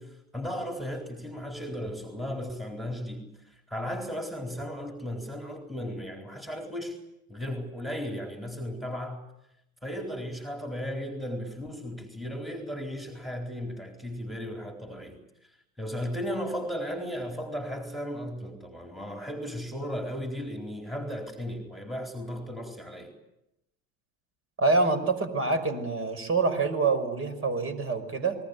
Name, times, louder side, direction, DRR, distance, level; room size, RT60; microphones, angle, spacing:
voice 1, 0.0-7.0 7.3-9.2 9.8-23.1, equal, ahead, 3 dB, 4.2 m, -36 dB
voice 2, 24.6-28.4, right 3 dB, 35° right, 8 dB, 5.7 m, -26 dB
27.5 x 21.0 x 8.3 m, 0.83 s
hypercardioid pair, 100°, 40 cm